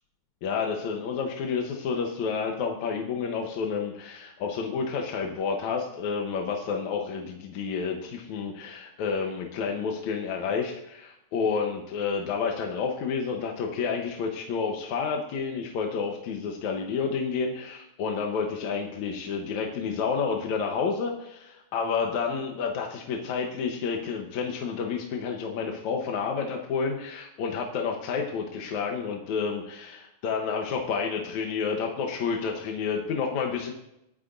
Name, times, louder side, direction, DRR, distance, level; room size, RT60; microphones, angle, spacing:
voice 1, 0.4-33.7, left 5 dB, 75° left, 1 dB, 2.4 m, -30 dB
25.0 x 9.8 x 2.7 m, 0.86 s
omnidirectional pair, 3.4 m